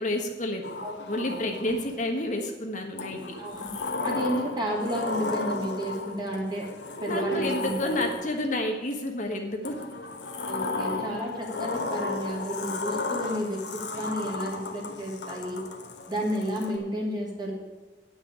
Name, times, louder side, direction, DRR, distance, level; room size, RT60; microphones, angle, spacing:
voice 1, 0.0-0.7 1.1-3.3 7.1-9.7, left 1 dB, 45° left, 2 dB, 1.3 m, -30 dB
Sliding door, 0.6-2.0 3.0-8.5 9.6-16.7, left 3 dB, 80° left, 1.3 m, -34 dB
voice 2, 1.3-1.7 3.4-3.7 4.0-6.7 7.0-8.1 10.5-15.6 16.1-17.5, equal, 25° right, -2 dB, 2.6 m, -32 dB
10.0 x 6.3 x 8.6 m, 1.2 s
head